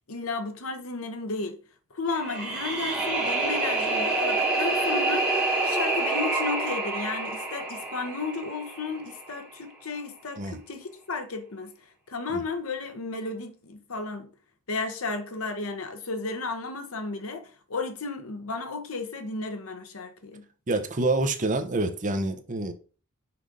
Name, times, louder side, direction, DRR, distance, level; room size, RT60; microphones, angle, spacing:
voice 1, 0.1-1.6 1.9-5.3 5.6-11.7 12.1-14.3 14.7-20.5, left 3 dB, 80° left, 1.1 m, -33 dB
sound 1, 2.1-9.2, right 2 dB, 5° right, 2.3 m, -27 dB
voice 2, 20.7-22.7, right 2 dB, 35° right, 0.8 m, -27 dB
5.9 x 5.0 x 3.9 m
head